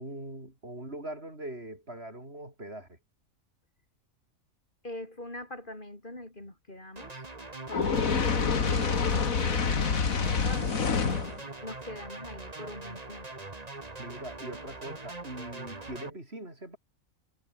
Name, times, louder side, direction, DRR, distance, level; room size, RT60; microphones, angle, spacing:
voice 1, 0.0-3.0 8.0-8.2 14.0-16.8, right 1 dB, 50° right, 7.0 m, -42 dB
voice 2, 4.8-7.2 7.7-13.5, left 1 dB, 35° left, 4.7 m, -43 dB
sound 1, 7.0-16.1, right 2 dB, 30° right, 2.2 m, -42 dB
Fire, 7.7-11.4, left 5 dB, 80° left, 2.4 m, -27 dB
omnidirectional pair, 1.4 m